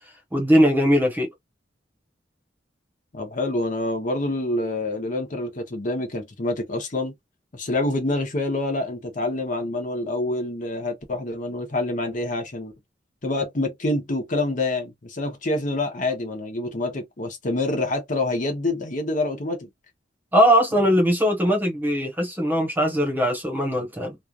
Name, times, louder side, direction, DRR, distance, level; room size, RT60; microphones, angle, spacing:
voice 1, 0.3-1.3 20.3-24.2, equal, 10° right, 1.1 m, -20 dB
voice 2, 3.1-7.1 7.5-12.7 13.2-19.7, left 2 dB, 45° left, 0.9 m, -27 dB
3.1 x 2.4 x 2.4 m
head